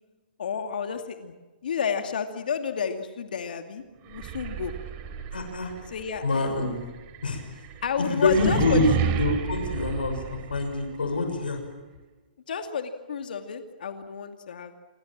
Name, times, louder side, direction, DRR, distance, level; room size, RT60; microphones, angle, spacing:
voice 1, 0.4-1.3 1.6-4.7 5.9-6.4 7.8-8.9 12.5-14.7, left 7 dB, 65° left, 7 dB, 2.5 m, -31 dB
sound 1, 4.1-11.0, right 8 dB, 35° right, 3.9 m, -32 dB
voice 2, 5.3-5.7 6.2-6.8 7.2-7.4 8.0-11.6, left 3 dB, 80° left, 5 dB, 6.5 m, -26 dB
27.5 x 23.0 x 7.5 m, 1.3 s
hypercardioid pair, 130°, 5 cm